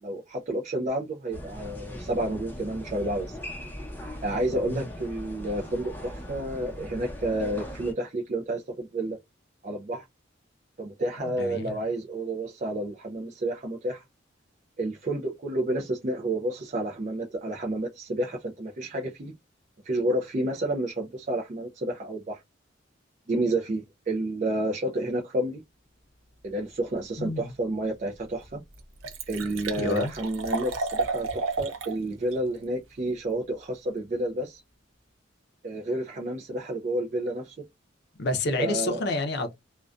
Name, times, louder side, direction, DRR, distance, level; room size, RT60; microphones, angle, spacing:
voice 1, 0.0-3.4 4.2-9.2 9.6-10.0 10.8-14.0 14.8-19.3 19.8-22.4 23.3-25.6 26.4-28.6 29.3-34.6 35.6-37.6 38.6-39.0, right 1 dB, 40° right, 0.4 m, -30 dB
sound 1, 1.3-7.9, equal, 10° left, 0.7 m, -39 dB
voice 2, 4.5-4.8 11.3-11.8 27.2-27.4 29.8-30.1 38.2-39.5, left 2 dB, 55° left, 0.5 m, -29 dB
Liquid, 27.9-28.0 28.4-28.5 28.7-32.0 32.3-32.4, right 3 dB, 85° right, 0.6 m, -32 dB
2.4 x 2.2 x 2.3 m
head